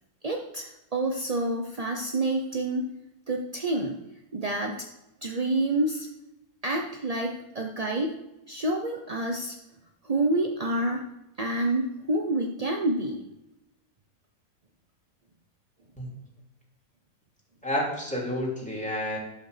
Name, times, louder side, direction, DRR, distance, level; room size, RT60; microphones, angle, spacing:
voice 1, 0.2-2.8 3.3-4.0 4.3-4.8 5.2-6.1 6.6-8.1 8.5-9.5 10.0-11.0 11.4-13.2, right 2 dB, 40° right, 2 dB, 0.5 m, -28 dB
voice 2, 17.6-19.2, left 1 dB, 5° left, -3 dB, 2.9 m, -30 dB
11.5 x 5.5 x 6.6 m, 0.94 s
omnidirectional pair, 1.8 m